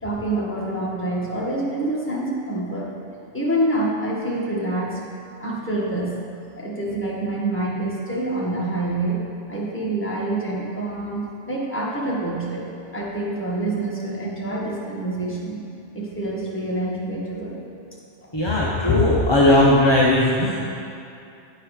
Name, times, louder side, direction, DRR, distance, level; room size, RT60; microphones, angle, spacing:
voice 1, 0.0-2.9 3.3-5.0 5.4-6.2 6.6-9.2 9.5-12.7 12.9-15.6 15.9-17.6, right 2 dB, 10° left, -6 dB, 1.4 m, -26 dB
voice 2, 18.3-20.7, left 1 dB, 30° left, -5 dB, 0.5 m, -17 dB
10.0 x 4.7 x 4.9 m, 2.6 s
omnidirectional pair, 1.3 m